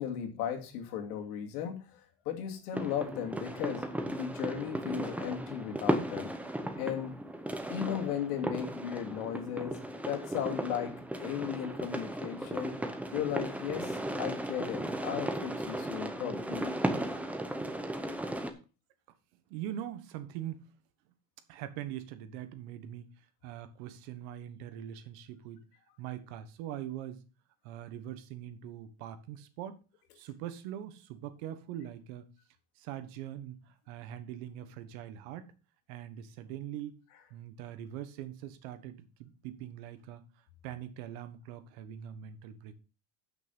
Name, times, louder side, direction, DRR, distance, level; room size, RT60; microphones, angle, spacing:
voice 1, 0.0-6.3 6.8-7.1 7.7-12.8 13.1-16.7, left 9 dB, 80° left, 2.5 m, -36 dB
sound 1, 2.7-18.5, right 1 dB, 5° right, 0.7 m, -36 dB
voice 2, 19.5-20.7 21.5-25.6 26.0-27.2 27.6-29.8 30.1-32.3 32.8-35.5 35.9-37.0 37.3-40.2 40.6-42.8, right 11 dB, 60° right, 1.4 m, -42 dB
8.7 x 6.2 x 5.3 m
supercardioid pair, 145°, 46 cm